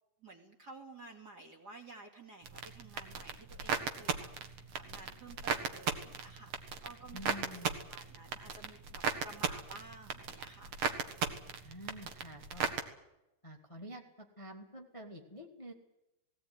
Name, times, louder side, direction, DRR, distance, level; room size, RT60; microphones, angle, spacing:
voice 1, 0.2-10.7, right 2 dB, 30° right, 2 dB, 2.3 m, -53 dB
sound 1, 2.4-12.8, right 6 dB, 55° right, 1.9 m, -37 dB
voice 2, 7.1-7.8 11.6-12.7 13.4-15.7, equal, 25° left, 2 dB, 0.7 m, -48 dB
18.5 x 18.0 x 9.6 m, 0.92 s
omnidirectional pair, 5.0 m